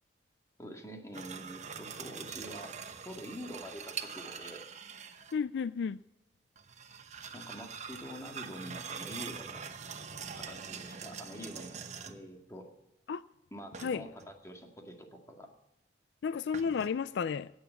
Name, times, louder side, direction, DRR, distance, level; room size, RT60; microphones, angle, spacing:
voice 1, 0.6-2.8 3.0-4.6 7.3-9.6 10.3-12.7 13.5-15.5, equal, 15° left, 3 dB, 2.1 m, -46 dB
sound 1, 1.1-5.4 6.6-12.3 13.7-14.3 16.5-16.9, right 6 dB, 40° right, 1.0 m, -44 dB
voice 2, 5.3-6.0 13.1-13.2 13.8-14.0 16.2-17.5, left 6 dB, 75° left, 17 dB, 0.4 m, -32 dB
17.5 x 7.2 x 7.0 m, 0.93 s
head